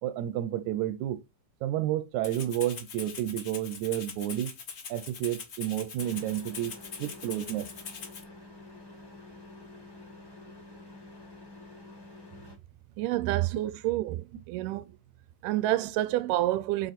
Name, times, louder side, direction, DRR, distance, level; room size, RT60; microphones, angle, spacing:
voice 1, 0.0-1.2 1.6-4.5 4.9-7.7, right 12 dB, 75° right, 2.1 m, -31 dB
Rattle (instrument), 2.2-8.2, left 6 dB, 75° left, 0.8 m, -42 dB
sound 1, 6.0-12.6, left 2 dB, 30° left, 0.4 m, -48 dB
voice 2, 13.0-14.8 15.4-16.9, right 15 dB, 90° right, 2.2 m, -28 dB
7.1 x 4.0 x 4.3 m
omnidirectional pair, 3.7 m